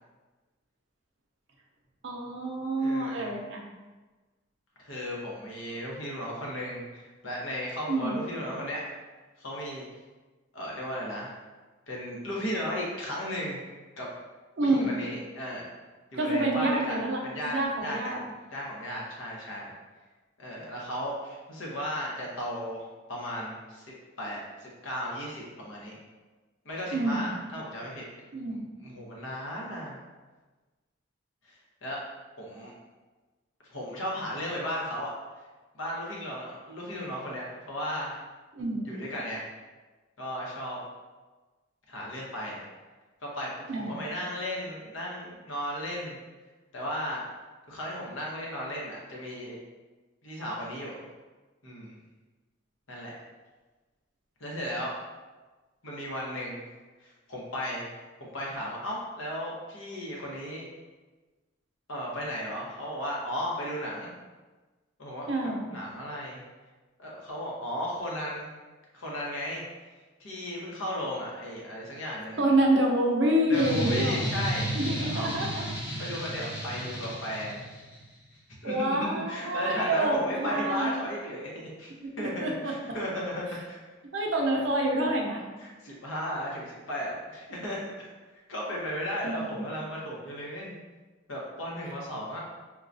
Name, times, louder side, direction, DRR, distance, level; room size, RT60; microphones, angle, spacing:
voice 1, 2.0-3.7 7.9-8.2 14.6-14.9 16.2-18.2 26.9-27.4 28.3-28.7 38.5-38.9 43.7-44.0 65.3-65.7 72.4-74.2 74.7-75.7 78.6-80.9 82.0-82.8 84.1-85.4 89.2-89.7, right 1 dB, 65° right, 0 dB, 0.6 m, -27 dB
voice 2, 2.8-3.3 4.8-8.8 9.4-9.8 10.5-11.4 11.9-13.6 14.0-14.1 14.6-15.7 16.1-18.2 18.5-19.7 20.4-23.9 24.2-26.0 26.6-28.0 28.5-30.0 31.4-32.0 32.4-32.7 33.7-35.1 35.7-38.2 38.8-39.5 40.2-40.8 41.9-42.6 43.2-43.5 43.7-46.2 46.7-47.3 47.7-49.6 50.2-51.0 51.6-52.0 52.9-53.1 54.4-54.9 55.8-56.6 57.0-57.9 58.2-60.6 61.9-64.1 65.0-66.4 67.0-68.5 68.9-69.6 70.2-72.5 73.5-74.7 75.0-75.3 76.0-77.6 78.6-83.8 85.6-87.8 88.5-90.7 91.3-92.4, equal, 85° left, -4 dB, 1.0 m, -35 dB
sound 1, 73.5-78.0, right 1 dB, 60° left, 0.8 m, -33 dB
4.6 x 2.3 x 2.6 m, 1.3 s
head